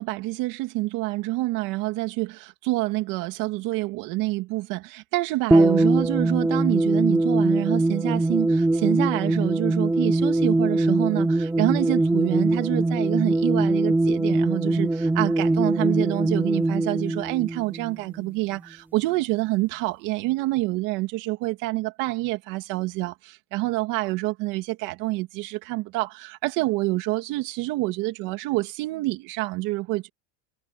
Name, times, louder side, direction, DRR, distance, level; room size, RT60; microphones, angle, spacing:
voice 1, 0.0-30.1, right 20 dB, 55° right, 2.3 m, -27 dB
sound 1, 5.5-18.3, right 2 dB, 5° right, 2.4 m, -22 dB
supercardioid pair, 155°, 39 cm